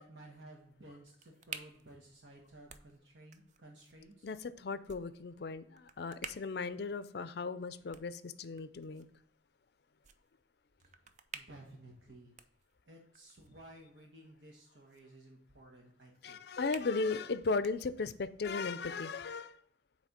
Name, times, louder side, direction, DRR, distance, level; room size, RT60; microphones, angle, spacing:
voice 1, 0.0-4.3 10.8-12.3 12.9-16.4, right 1 dB, 75° right, -1 dB, 1.2 m, -55 dB
sound 1, 0.6-18.3, right 6 dB, 40° right, 0.4 m, -54 dB
voice 2, 4.2-9.1 16.2-19.6, left 4 dB, 60° left, 13 dB, 0.4 m, -36 dB
8.4 x 3.2 x 4.1 m, 0.67 s
head